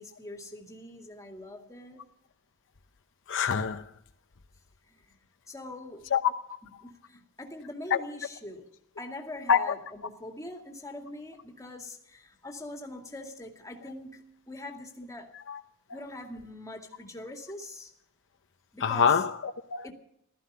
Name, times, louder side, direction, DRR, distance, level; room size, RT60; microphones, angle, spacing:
voice 1, 0.0-2.1 4.9-5.2 5.5-6.1 6.8-8.7 9.0-15.3 15.9-17.9 18.7-19.1 19.8-19.9, left 1 dB, 15° left, 2.2 m, -43 dB
voice 2, 3.3-3.9 6.1-6.3 7.9-8.0 9.5-9.6 15.3-15.6 18.8-19.9, left 7 dB, 60° left, 0.8 m, -25 dB
15.5 x 13.5 x 6.7 m
head